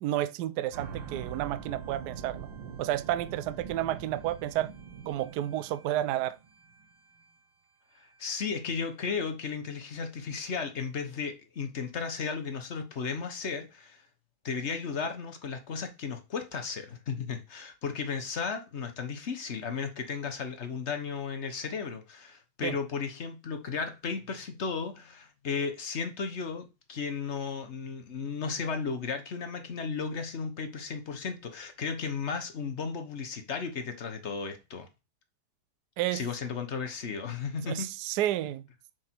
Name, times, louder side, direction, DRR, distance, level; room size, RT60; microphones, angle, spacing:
voice 1, 0.0-2.5 2.8-4.7 5.1-6.4 22.6-22.8 36.0-36.2 37.7-38.6, right 13 dB, 85° right, 0.9 m, -31 dB
sound 1, 0.7-6.9 7.2-7.3, right 6 dB, 65° right, 1.9 m, -43 dB
voice 2, 8.0-14.0 14.4-34.9 36.1-37.9, left 5 dB, 45° left, 0.9 m, -35 dB
7.2 x 5.1 x 4.5 m
omnidirectional pair, 2.3 m